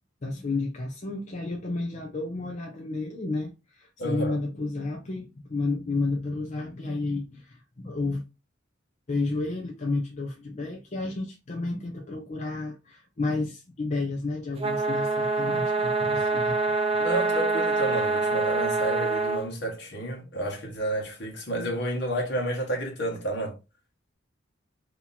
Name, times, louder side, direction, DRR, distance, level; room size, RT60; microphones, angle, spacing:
voice 1, 0.2-8.2 9.1-16.6 16.9-17.0, left 3 dB, 40° left, 0.6 m, -31 dB
voice 2, 4.0-4.4 17.0-23.6, right 1 dB, 65° left, 1.3 m, -30 dB
sound 1, 14.6-19.4, right 3 dB, 30° right, 0.6 m, -25 dB
2.9 x 2.8 x 3.9 m
head